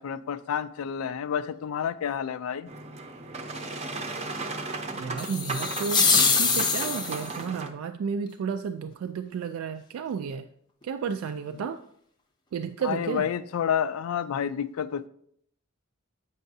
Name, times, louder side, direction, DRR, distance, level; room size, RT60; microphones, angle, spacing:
voice 1, 0.0-2.7 11.5-11.7 12.8-15.1, left 8 dB, 85° left, 14 dB, 0.3 m, -29 dB
Boat Water vehicle, 2.7-7.7, right 3 dB, 30° right, 0.6 m, -35 dB
voice 2, 4.9-10.5 10.8-11.8 12.5-13.3, right 6 dB, 85° right, 9 dB, 0.3 m, -32 dB
sound 1, 5.2-7.4, left 5 dB, 20° left, 0.6 m, -24 dB
8.0 x 5.5 x 2.6 m, 0.68 s
head